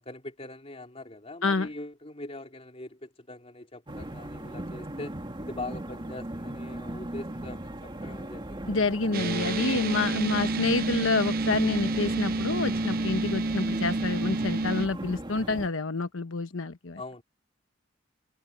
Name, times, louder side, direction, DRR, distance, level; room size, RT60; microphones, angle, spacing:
voice 1, 0.0-5.1 5.4-8.8 17.0-17.2, left 2 dB, 30° left, 3.2 m, -42 dB
sound 1, 3.9-15.7, right 1 dB, 25° right, 2.1 m, -38 dB
voice 2, 8.7-17.0, left 3 dB, 85° left, 1.1 m, -28 dB
sound 2, 9.1-14.9, right 3 dB, 50° right, 0.6 m, -29 dB
head